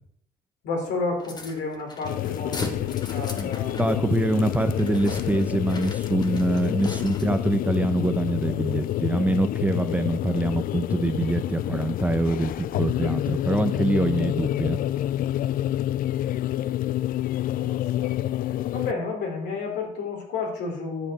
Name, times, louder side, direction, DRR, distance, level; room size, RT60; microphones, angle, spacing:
voice 1, 0.6-4.0 6.6-6.8 17.4-21.1, left 4 dB, 85° left, 0 dB, 3.8 m, -32 dB
sound 1, 1.2-7.5, left 2 dB, 25° left, 1.7 m, -39 dB
sound 2, 2.0-18.9, left 13 dB, 55° left, 0.4 m, -28 dB
voice 2, 3.8-14.8, right 2 dB, 10° right, 7 dB, 0.8 m, -25 dB
10.5 x 7.5 x 6.8 m, 0.75 s
cardioid pair, 110°, 17 cm